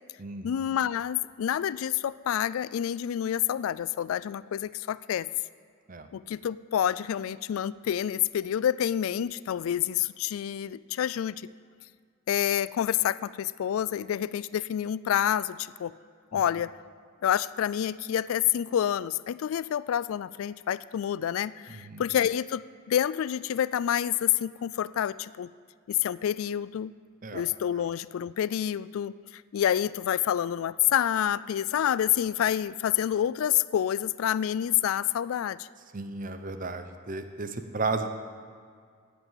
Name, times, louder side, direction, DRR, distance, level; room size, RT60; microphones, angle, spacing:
voice 1, 0.4-5.3 6.1-11.5 12.3-15.9 16.3-16.7 17.2-25.5 25.9-26.9 27.3-35.7, left 10 dB, 80° left, 19 dB, 0.3 m, -28 dB
voice 2, 21.7-22.0 27.2-27.4 35.9-38.1, right 3 dB, 40° right, 8 dB, 0.7 m, -34 dB
11.0 x 8.2 x 7.4 m, 2.1 s
head